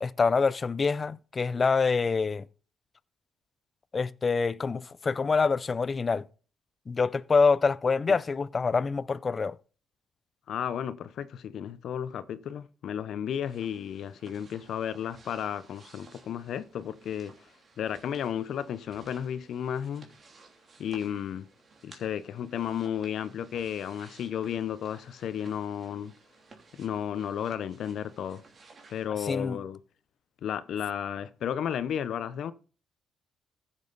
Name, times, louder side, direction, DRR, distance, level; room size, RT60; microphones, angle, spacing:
voice 1, 0.0-2.4 3.9-6.3 6.9-9.6 29.2-29.6, left 4 dB, 35° left, 0.5 m, -26 dB
voice 2, 10.5-17.3 17.8-20.1 20.8-21.4 21.8-26.1 26.8-28.4 28.9-29.8 30.4-32.5, left 9 dB, 70° left, 0.7 m, -33 dB
sound 1, 13.4-29.1, right 4 dB, 45° right, 3.0 m, -56 dB
14.5 x 7.3 x 4.0 m
cardioid pair, 90°, 0 cm